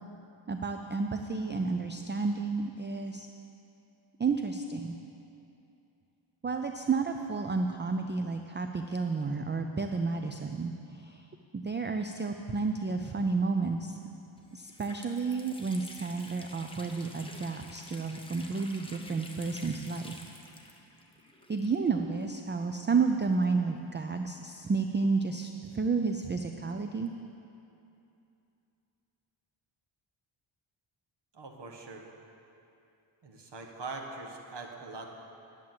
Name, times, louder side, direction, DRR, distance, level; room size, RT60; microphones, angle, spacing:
voice 1, 0.5-3.3 4.2-5.0 6.4-11.2 11.5-14.0 14.5-20.1 21.5-27.1, right 4 dB, 25° right, 6 dB, 0.4 m, -31 dB
Water tap faucet, 13.9-14.0 14.4-22.1 22.4-22.5 23.3-24.8, left 1 dB, 10° left, 0.9 m, -50 dB
voice 2, 31.3-32.0 33.2-35.1, right 3 dB, 55° right, 2 dB, 1.4 m, -42 dB
11.0 x 7.4 x 7.5 m, 2.8 s
wide cardioid pair, 140°, 49 cm